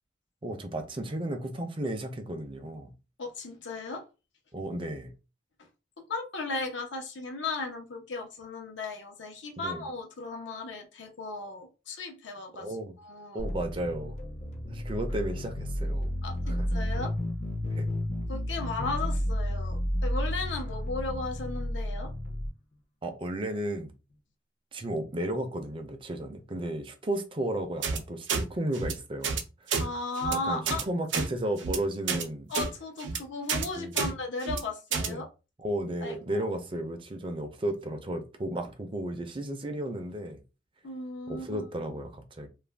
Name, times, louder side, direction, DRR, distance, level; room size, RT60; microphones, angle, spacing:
voice 1, 0.4-2.9 4.5-5.1 9.6-9.9 12.5-12.9 13.3-14.2 14.7-16.1 16.5-16.7 17.6-17.9 23.0-23.9 24.7-29.8 30.3-32.5 33.8-34.1 35.0-35.2 35.6-40.4 41.3-42.5, right 1 dB, 30° right, 0.5 m, -34 dB
voice 2, 3.2-4.0 6.1-12.7 13.0-13.4 16.2-17.1 18.3-22.1 29.8-30.8 32.5-35.3 36.0-36.5 40.8-41.9, left 3 dB, 80° left, 0.8 m, -36 dB
sound 1, 13.4-22.5, equal, 40° left, 0.6 m, -32 dB
sound 2, 27.8-28.0 28.3-28.4 28.7-28.9 29.2-29.4 29.7-29.8 30.2-30.3 30.7-30.8 31.1-31.3 31.6-31.8 32.1-32.2 32.5-32.7 33.0-33.2 33.5-33.7 34.0-34.1 34.4-34.6 34.9-35.1, right 5 dB, 80° right, 0.5 m, -29 dB
2.4 x 2.2 x 3.3 m
head